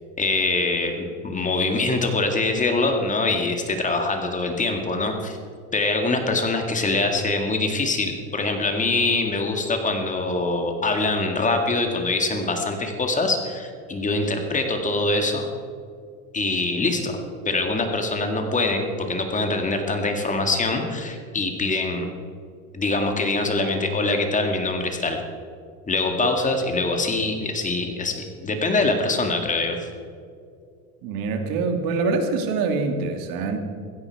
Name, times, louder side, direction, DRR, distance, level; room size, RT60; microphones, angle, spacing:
voice 1, 0.2-5.4 5.7-15.5 16.3-17.1 17.5-22.1 22.7-25.2 25.9-29.8, left 3 dB, 20° left, 4 dB, 2.0 m, -24 dB
voice 2, 31.0-33.6, right 4 dB, 60° right, 6 dB, 2.1 m, -25 dB
16.0 x 14.0 x 4.8 m, 2.3 s
supercardioid pair, 120°, 39 cm